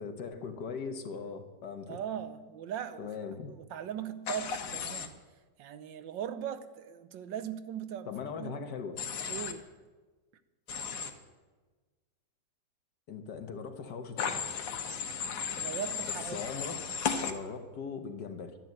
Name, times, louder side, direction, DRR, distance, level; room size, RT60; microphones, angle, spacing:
voice 1, 0.0-2.0 3.0-3.5 8.1-9.0 13.1-14.5 16.3-18.6, left 5 dB, 70° left, 6 dB, 1.7 m, -40 dB
voice 2, 1.9-3.1 3.5-5.1 5.6-8.6 9.3-9.7 15.6-16.4, right 9 dB, 85° right, 11 dB, 1.5 m, -39 dB
Human voice / Train, 4.3-5.1 9.0-9.5 10.7-11.1 14.2-17.3, left 6 dB, 85° left, 1.8 m, -35 dB
12.0 x 10.5 x 7.7 m, 1.3 s
omnidirectional pair, 1.9 m